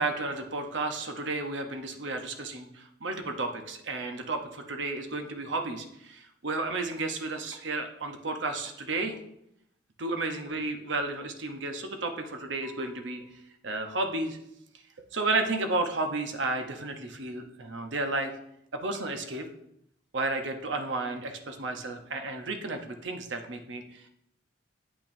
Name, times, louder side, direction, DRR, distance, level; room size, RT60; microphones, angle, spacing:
voice 1, 0.0-9.2 10.0-13.2 13.6-14.4 15.1-18.3 18.7-19.5 20.1-24.1, right 2 dB, 70° right, 5 dB, 0.8 m, -32 dB
8.4 x 5.9 x 2.6 m, 0.77 s
head